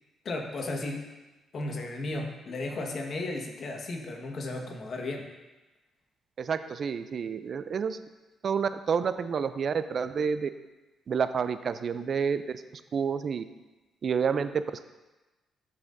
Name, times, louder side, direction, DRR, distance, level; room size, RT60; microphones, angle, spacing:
voice 1, 0.2-1.0 1.5-5.2, left 2 dB, 55° left, 2 dB, 1.5 m, -34 dB
voice 2, 6.4-8.0 8.4-10.5 11.1-12.4 12.9-13.4 14.0-14.5, right 6 dB, 55° right, 11 dB, 0.5 m, -29 dB
13.0 x 5.6 x 2.7 m, 1.1 s
supercardioid pair, 55°, 0 cm